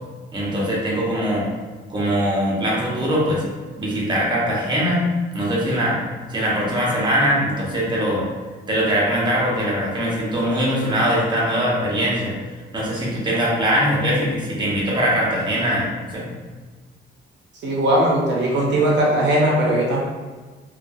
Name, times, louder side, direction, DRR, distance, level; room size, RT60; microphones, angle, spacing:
voice 1, 0.3-1.5 1.9-3.4 3.8-5.0 5.3-6.0 6.3-8.2 8.7-12.3 12.7-16.2, equal, 20° right, -5 dB, 0.9 m, -21 dB
voice 2, 17.6-20.0, right 1 dB, 65° right, -4 dB, 0.6 m, -19 dB
2.5 x 2.4 x 2.6 m, 1.3 s
cardioid pair, 90°, 20 cm